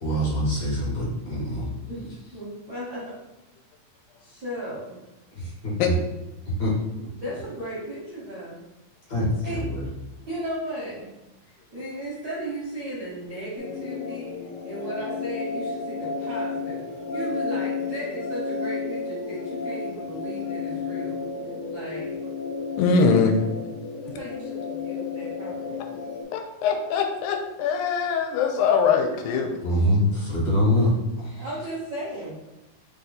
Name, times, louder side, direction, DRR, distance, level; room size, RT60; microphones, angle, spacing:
voice 1, 0.0-1.7 5.3-5.9 6.6-6.7 9.1-9.8 29.6-30.9, left 1 dB, 50° left, -7 dB, 1.3 m, -24 dB
voice 2, 2.3-3.1 4.2-5.0 7.1-8.5 9.4-9.6 10.3-11.0 11.4-14.3 14.6-16.8 17.1-21.2 21.7-22.2 22.9-23.1 24.0-26.0 31.4-32.3, right 1 dB, 60° right, -8 dB, 1.1 m, -35 dB
sound 1, 13.6-26.2, left 4 dB, 70° left, 2.0 m, -32 dB
voice 3, 22.8-23.3 26.3-29.5, left 5 dB, 90° left, 4 dB, 2.1 m, -22 dB
4.6 x 2.8 x 3.9 m, 1.0 s
omnidirectional pair, 3.5 m